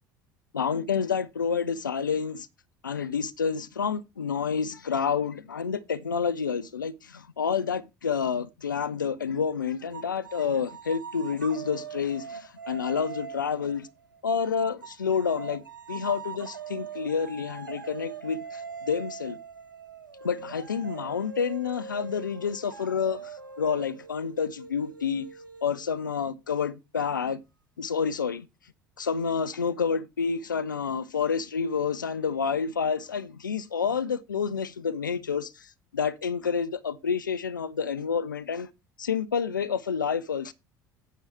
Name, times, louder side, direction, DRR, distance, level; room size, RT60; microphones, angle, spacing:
voice 1, 0.5-2.5 2.8-13.9 14.2-15.6 15.9-19.4 20.2-23.3 23.6-25.3 25.6-27.4 27.8-28.5 29.0-38.7 39.0-40.5, left 6 dB, 85° left, 0.5 m, -29 dB
sound 1, 9.9-14.3 14.8-26.2, right 5 dB, 85° right, 0.6 m, -42 dB
9.1 x 4.7 x 5.6 m
figure-of-eight pair, 65°, 10 cm